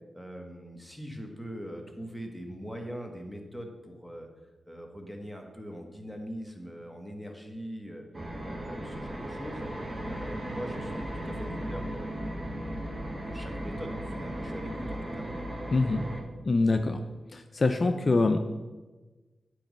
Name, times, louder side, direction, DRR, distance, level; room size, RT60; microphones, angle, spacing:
voice 1, 0.1-4.3 4.7-8.1 8.4-9.7 10.0-12.5 13.3-15.2, equal, ahead, 2 dB, 1.2 m, -42 dB
sound 1, 8.1-16.2, right 1 dB, 30° right, 1.1 m, -36 dB
voice 2, 15.7-16.0 16.4-17.0 17.3-18.4, left 3 dB, 50° left, 7 dB, 0.4 m, -24 dB
8.5 x 3.1 x 5.2 m, 1.2 s
cardioid pair, 50°, 0 cm